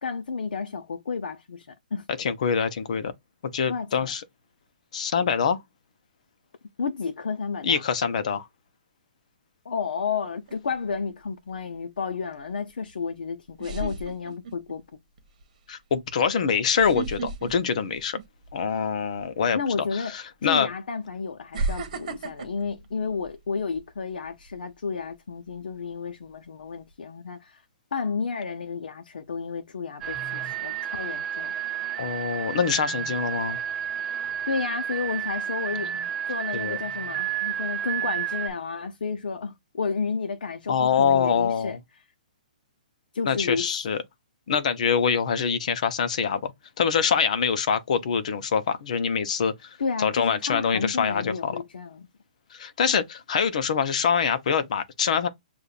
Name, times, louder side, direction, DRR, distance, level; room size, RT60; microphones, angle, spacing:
voice 1, 0.0-2.1 3.7-4.1 6.8-7.8 9.6-15.0 19.5-20.1 20.4-27.6 27.9-31.5 34.5-35.9 36.3-41.8 43.1-43.7 49.8-52.1, left 5 dB, 85° left, 0.8 m, -31 dB
voice 2, 2.2-3.1 3.5-4.2 4.9-5.6 7.6-8.5 15.7-18.2 18.5-20.7 32.0-33.6 36.5-36.8 40.7-41.8 43.3-44.0 44.5-46.5 46.8-51.5 52.5-55.3, left 6 dB, 50° left, 0.8 m, -25 dB
sound 1, 10.5-10.9 12.9-13.0 13.6-14.7 15.2-15.4 16.7-18.6 18.9-19.2 20.2-20.3 21.5-23.8 24.2-24.5, right 4 dB, 50° right, 1.2 m, -34 dB
sound 2, 30.0-38.5, right 10 dB, 15° right, 0.7 m, -31 dB
6.8 x 2.5 x 2.4 m
hypercardioid pair, 170°, 5 cm